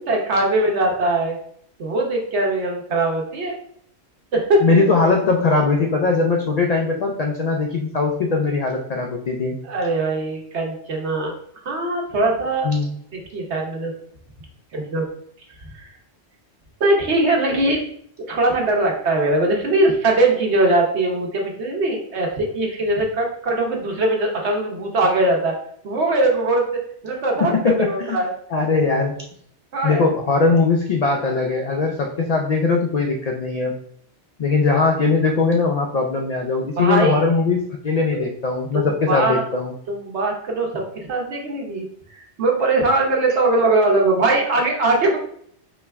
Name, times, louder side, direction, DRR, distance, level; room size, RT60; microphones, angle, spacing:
voice 1, 0.0-1.4 1.8-3.6 4.3-4.6 9.6-11.3 11.6-12.7 13.3-13.9 14.7-15.0 15.7-15.9 16.8-17.8 18.3-25.6 25.8-28.3 29.7-30.1 36.8-37.2 38.1-38.3 38.7-39.4 39.9-41.9 42.4-45.2, right 2 dB, 65° right, 1 dB, 1.1 m, -21 dB
voice 2, 4.6-9.6 12.6-12.9 27.4-28.2 28.5-29.1 29.8-33.7 34.4-39.7, left 4 dB, 90° left, 2 dB, 0.3 m, -20 dB
4.4 x 2.2 x 3.4 m, 0.65 s
omnidirectional pair, 1.2 m